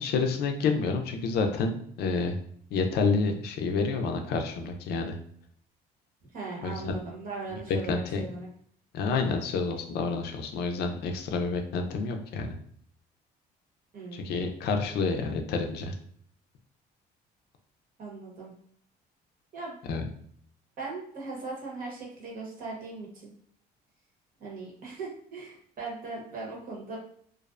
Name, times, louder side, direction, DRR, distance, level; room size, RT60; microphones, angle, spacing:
voice 1, 0.0-2.4 2.7-5.2 6.6-6.9 7.7-8.2 8.9-12.5 14.1-15.9 19.9-20.1, left 4 dB, 75° left, 4 dB, 0.4 m, -29 dB
voice 2, 6.3-8.5 13.9-14.3 18.0-18.5 19.5-19.8 20.8-23.3 24.4-27.0, right 3 dB, 55° right, -3 dB, 1.0 m, -39 dB
2.5 x 2.0 x 2.4 m, 0.63 s
cardioid pair, 110°, 17 cm